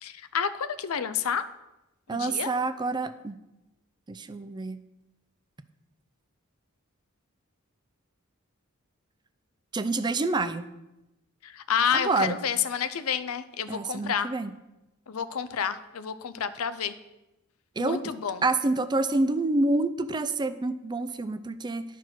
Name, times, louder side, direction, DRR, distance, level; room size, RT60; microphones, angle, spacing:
voice 1, 0.0-1.5 2.1-2.5 11.4-14.3 15.1-16.9 17.8-18.4, left 7 dB, 80° left, 13 dB, 0.6 m, -29 dB
voice 2, 2.1-3.4 4.1-4.8 9.7-10.7 11.9-12.4 13.7-14.5 17.8-18.0 18.4-21.8, right 2 dB, 20° right, 11 dB, 0.4 m, -27 dB
11.0 x 4.6 x 6.0 m, 0.97 s
head